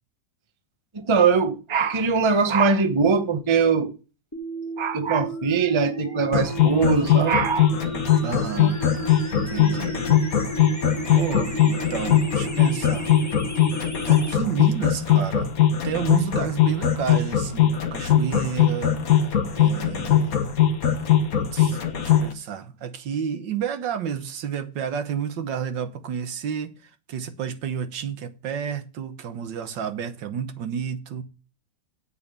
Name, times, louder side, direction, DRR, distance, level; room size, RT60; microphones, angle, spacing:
voice 1, 0.9-3.9 4.8-7.7, right 5 dB, 25° right, 0.6 m, -21 dB
sound 1, 4.3-14.3, equal, 10° left, 1.7 m, -34 dB
sound 2, 6.3-22.3, left 10 dB, 50° left, 1.6 m, -20 dB
voice 2, 8.2-8.8 9.3-10.0 11.1-13.1 14.1-15.5 15.8-20.4 21.4-26.7 27.1-31.2, right 8 dB, 70° right, 1.7 m, -31 dB
8.4 x 6.9 x 6.7 m
omnidirectional pair, 2.0 m